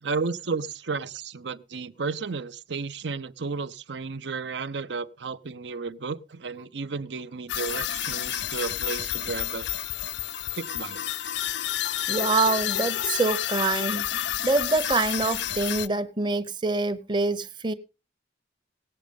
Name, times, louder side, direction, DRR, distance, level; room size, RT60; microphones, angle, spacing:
voice 1, 0.0-9.7 10.5-11.0, right 4 dB, 75° right, 0.7 m, -33 dB
sound 1, 7.5-15.9, left 11 dB, 80° left, 0.5 m, -30 dB
voice 2, 12.1-17.7, right 3 dB, 25° right, 0.8 m, -26 dB
18.5 x 7.4 x 5.2 m
head